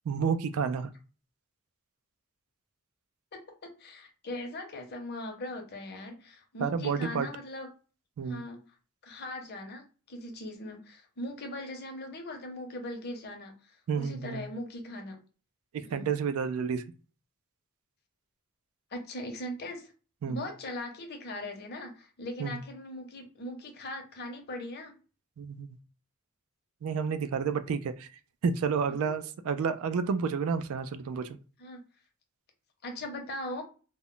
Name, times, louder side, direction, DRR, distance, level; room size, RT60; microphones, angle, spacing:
voice 1, 0.1-0.9 6.6-7.3 8.2-8.4 13.9-14.5 15.9-16.8 20.2-20.4 22.4-22.6 25.4-25.8 26.8-28.1 28.4-31.4, right 6 dB, 80° right, 11 dB, 0.3 m, -30 dB
voice 2, 3.8-7.7 8.2-8.6 9.0-15.2 15.8-16.1 18.9-19.9 20.3-24.9 29.0-29.1 31.6-31.8 32.8-33.6, left 1 dB, 50° left, 3 dB, 0.7 m, -40 dB
2.1 x 2.0 x 3.7 m, 0.36 s
head